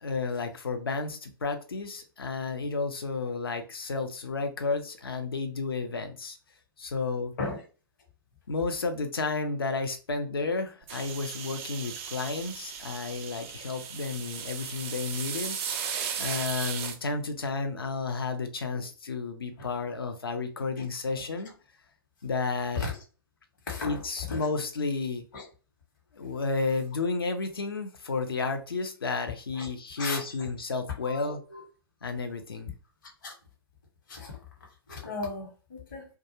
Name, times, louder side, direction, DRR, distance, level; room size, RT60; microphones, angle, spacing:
voice 1, 0.0-6.4 6.8-7.3 8.5-15.6 16.2-21.5 22.2-22.9 23.8-25.2 26.1-31.4 32.0-32.7, left 4 dB, 70° left, 0.6 m, -32 dB
sound 1, 10.9-17.0, right 7 dB, 35° right, 0.4 m, -36 dB
voice 2, 23.7-24.0 24.3-24.5 25.3-25.4 29.5-29.7 30.0-30.5 31.0-31.6 33.2-33.3 34.1-34.4 34.9-36.1, left 3 dB, 55° left, 1.1 m, -36 dB
2.3 x 2.3 x 2.9 m
figure-of-eight pair, 115°, 13 cm